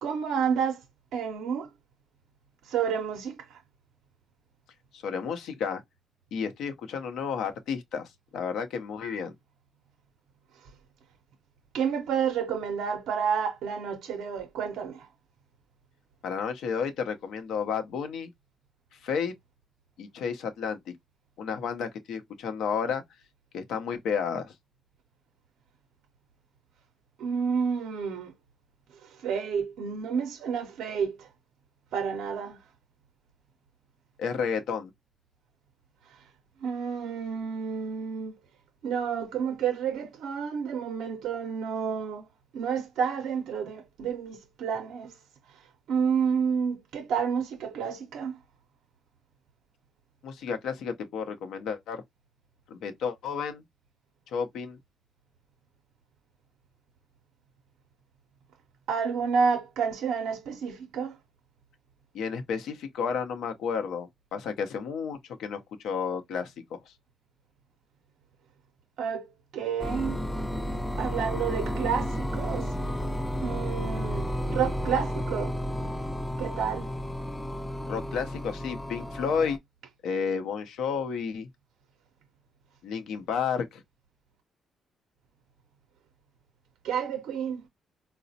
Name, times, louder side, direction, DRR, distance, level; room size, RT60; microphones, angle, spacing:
voice 1, 0.0-0.8 1.1-1.7 2.6-3.6 11.7-15.1 27.2-28.3 29.0-31.3 31.9-32.6 36.6-38.3 38.8-42.3 42.5-45.2 45.9-48.3 58.9-61.1 69.0-69.3 69.5-70.2 71.0-72.8 73.4-75.6 76.4-76.9 86.8-87.6, right 6 dB, 80° right, 0.5 m, -30 dB
voice 2, 4.9-5.8 6.3-9.3 16.2-18.3 19.0-19.3 20.0-20.9 21.4-23.0 23.5-24.5 34.2-34.9 50.2-52.0 52.7-53.6 54.3-54.8 62.1-66.9 77.9-79.6 80.0-81.5 82.8-83.8, left 6 dB, 80° left, 0.6 m, -32 dB
sound 1, 69.8-79.6, equal, 10° left, 0.4 m, -32 dB
4.0 x 2.0 x 2.6 m
cardioid pair, 90°, 0 cm